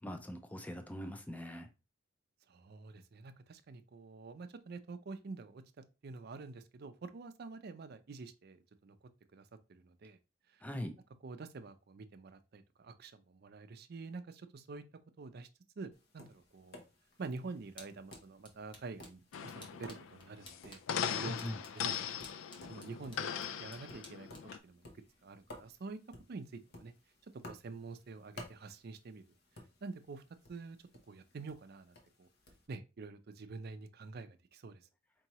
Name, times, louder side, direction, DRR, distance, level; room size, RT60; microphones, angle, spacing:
voice 1, 0.0-1.7 10.6-11.0 21.2-21.6, equal, 10° left, 0.4 m, -42 dB
voice 2, 2.5-5.6 6.0-10.2 10.5-10.6 11.2-14.8 15.2-15.5 15.8-16.8 17.2-20.8 21.1-22.0 22.3-22.4 22.7-24.3 24.6-24.9 25.2-26.0 26.3-26.9 27.5-29.2 29.8-30.2 30.5-30.8 31.1-32.3 32.7-34.9, right 3 dB, 55° right, 0.4 m, -47 dB
Tap, 15.9-32.7, left 1 dB, 55° left, 0.9 m, -57 dB
sound 1, 17.1-25.8, left 1 dB, 25° left, 1.0 m, -60 dB
sound 2, 19.3-24.6, left 8 dB, 75° left, 0.3 m, -39 dB
4.5 x 2.8 x 3.0 m
head